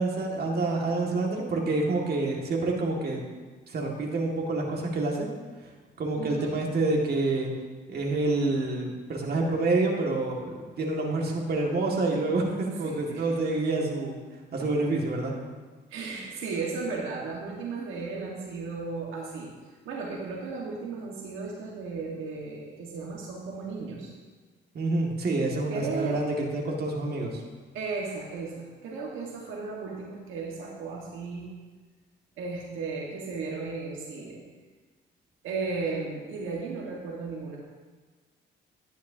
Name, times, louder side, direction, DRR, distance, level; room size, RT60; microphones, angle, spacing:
voice 1, 0.0-3.2 3.7-5.3 6.0-7.5 7.9-14.2 14.5-15.4 24.7-27.4, right 2 dB, 50° right, -1 dB, 2.0 m, -27 dB
voice 2, 6.2-6.6 12.8-13.4 14.6-14.7 15.9-19.5 19.8-24.1 25.7-26.3 27.7-31.5 32.4-34.4 35.4-37.6, right 4 dB, 90° right, -2 dB, 1.6 m, -35 dB
11.0 x 10.0 x 2.8 m, 1.4 s
cardioid pair, 90°, 20 cm